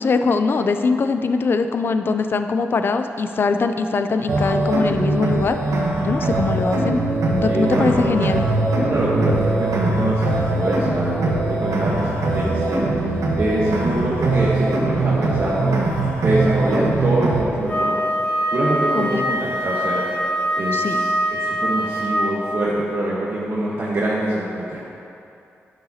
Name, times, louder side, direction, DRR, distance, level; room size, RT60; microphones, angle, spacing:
voice 1, 0.0-5.6 6.0-8.4 18.9-19.2 20.7-21.0, left 4 dB, 50° left, 8 dB, 0.4 m, -22 dB
sound 1, 4.3-17.4, right 2 dB, 90° right, 1.0 m, -21 dB
voice 2, 7.4-8.2 8.8-15.7 16.2-18.1 18.5-20.0 20.6-24.8, right 1 dB, 55° right, -7 dB, 1.2 m, -24 dB
Wind instrument woodwind instrument, 17.7-22.5, equal, 30° left, 1.5 m, -23 dB
10.5 x 6.8 x 2.8 m, 2.8 s
cardioid pair, 90°, 5 cm